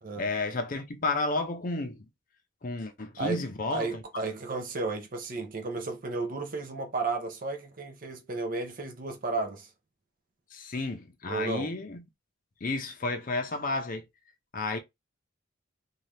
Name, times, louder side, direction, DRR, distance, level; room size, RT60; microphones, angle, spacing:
voice 1, 0.2-2.0 2.6-4.0 10.5-12.0 12.6-14.1 14.5-14.8, left 2 dB, 45° left, 0.5 m, -32 dB
voice 2, 3.7-9.7 11.3-11.7, right 3 dB, 45° right, 0.6 m, -33 dB
2.7 x 2.3 x 3.2 m
head